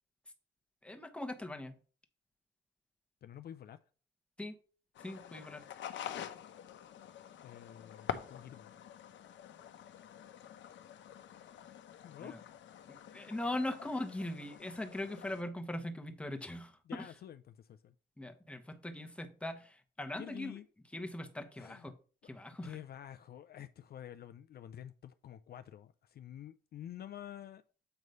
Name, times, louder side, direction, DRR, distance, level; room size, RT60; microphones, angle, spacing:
voice 1, 0.8-1.8 4.4-4.6 5.0-5.7 12.2-12.4 12.9-17.1 18.2-20.5 20.9-21.9 22.2-22.8, left 1 dB, 5° left, 1.1 m, -40 dB
voice 2, 3.2-3.8 7.4-8.7 11.6-11.7 12.0-12.5 13.8-13.9 16.9-17.9 20.2-20.7 21.6-21.9 22.6-27.6, left 10 dB, 50° left, 0.4 m, -49 dB
sound 1, 4.9-15.4, left 10 dB, 70° left, 0.8 m, -47 dB
7.9 x 3.1 x 5.4 m
cardioid pair, 90°, 20 cm